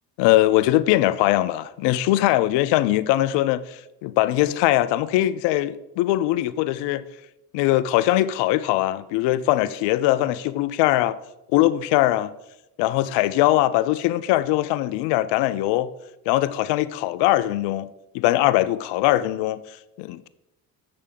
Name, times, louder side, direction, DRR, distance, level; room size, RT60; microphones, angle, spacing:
voice 1, 0.2-7.0 7.5-11.2 11.5-12.3 12.8-15.9 16.3-17.9 18.1-20.3, left 15 dB, 55° left, 0.6 m, -21 dB
7.4 x 6.5 x 5.2 m
figure-of-eight pair, 50°, 50 cm